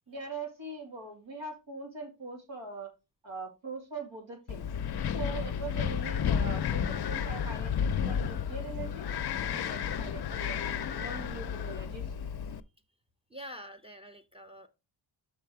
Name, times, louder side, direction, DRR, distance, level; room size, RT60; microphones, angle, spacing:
voice 1, 0.1-2.9 3.2-4.7 5.1-9.1 9.4-12.1, right 3 dB, 65° right, 2.7 m, -42 dB
Wind, 4.5-12.6, left 8 dB, 55° left, 0.6 m, -32 dB
voice 2, 13.3-14.7, equal, 10° right, 0.8 m, -46 dB
6.1 x 5.5 x 4.8 m
wide cardioid pair, 110°, 48 cm